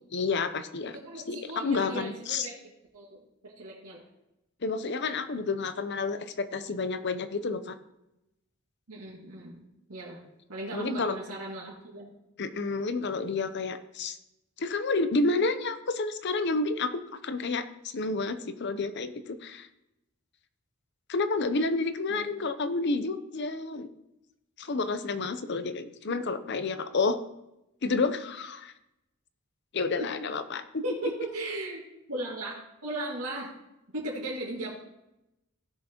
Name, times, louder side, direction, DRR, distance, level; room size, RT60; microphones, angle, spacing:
voice 1, 0.1-1.0 1.3-2.5 4.6-7.8 10.7-11.1 12.4-14.2 14.6-19.7 21.1-23.9 24.6-27.2 27.8-28.7 29.7-30.8, left 3 dB, 50° left, 11 dB, 0.7 m, -30 dB
voice 2, 0.9-2.6 2.9-4.0 8.9-9.6 9.9-12.1 22.1-22.2 30.0-30.1 30.8-31.8 32.1-32.6 32.8-33.5 33.9-34.8, right 2 dB, 90° right, -5 dB, 2.2 m, -37 dB
16.5 x 6.5 x 2.9 m, 0.90 s
head